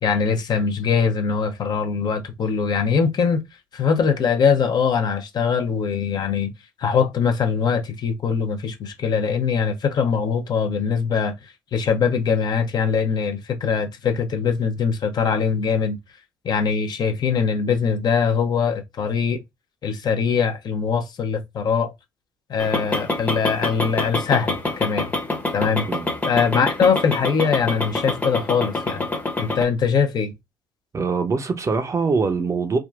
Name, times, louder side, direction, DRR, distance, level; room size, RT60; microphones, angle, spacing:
voice 1, 0.0-3.4 3.7-6.5 6.8-16.0 16.4-19.4 19.8-21.9 22.5-25.1 25.5-25.9 26.2-29.1 29.4-30.3, left 6 dB, 45° left, 0.7 m, -22 dB
sound 1, 22.6-29.6, left 2 dB, 15° left, 0.9 m, -26 dB
voice 2, 30.9-32.8, right 4 dB, 30° right, 0.7 m, -23 dB
3.5 x 2.3 x 2.4 m
hypercardioid pair, 55°, 10 cm